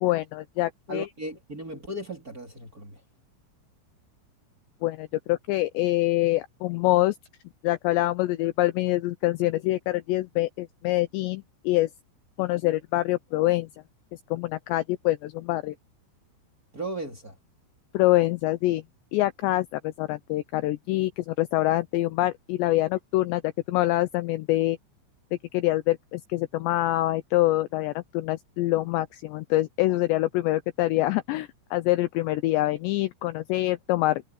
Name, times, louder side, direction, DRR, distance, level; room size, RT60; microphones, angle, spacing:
voice 1, 0.0-1.1 4.8-7.2 7.6-11.9 12.4-13.7 14.3-15.8 17.9-18.8 19.1-23.4 23.7-24.8 25.5-34.2, left 17 dB, 80° left, 2.6 m, -25 dB
voice 2, 0.9-3.0 16.7-17.4, right 1 dB, 20° right, 2.9 m, -36 dB
omnidirectional pair, 5.6 m